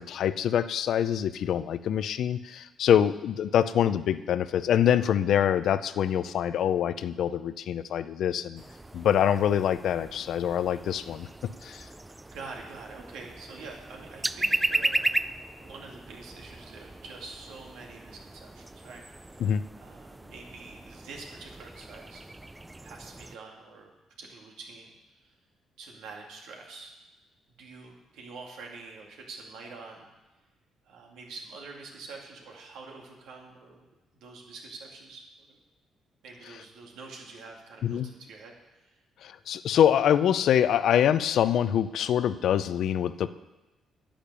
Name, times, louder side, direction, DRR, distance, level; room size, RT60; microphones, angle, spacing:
voice 1, 0.0-8.6 8.9-11.3 11.6-11.9 19.4-19.6 37.8-38.1 39.2-43.3, left 9 dB, 70° left, 13 dB, 0.5 m, -25 dB
sound 1, 8.6-23.4, right 2 dB, 15° right, 0.4 m, -36 dB
voice 2, 12.3-15.1 15.6-22.2 22.8-23.9 24.2-25.3 25.8-26.9 27.6-30.1 30.8-35.6 36.2-38.5 38.8-39.0, right 4 dB, 85° right, 0 dB, 2.5 m, -46 dB
10.0 x 8.8 x 6.9 m, 1.1 s
cardioid pair, 90°, 0 cm